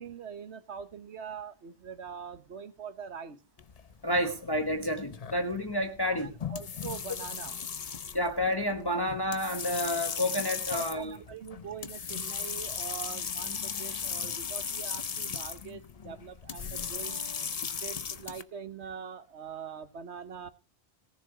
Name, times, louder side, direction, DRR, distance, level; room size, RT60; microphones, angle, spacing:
voice 1, 0.0-3.4 6.0-7.6 10.7-17.2 17.6-20.5, right 7 dB, 80° right, 12 dB, 1.4 m, -43 dB
sound 1, 3.6-18.4, left 6 dB, 40° left, 0.7 m, -37 dB
voice 2, 4.0-6.3 8.1-11.2, left 1 dB, 20° left, 3 dB, 1.4 m, -30 dB
18.0 x 7.0 x 5.0 m, 0.31 s
omnidirectional pair, 1.1 m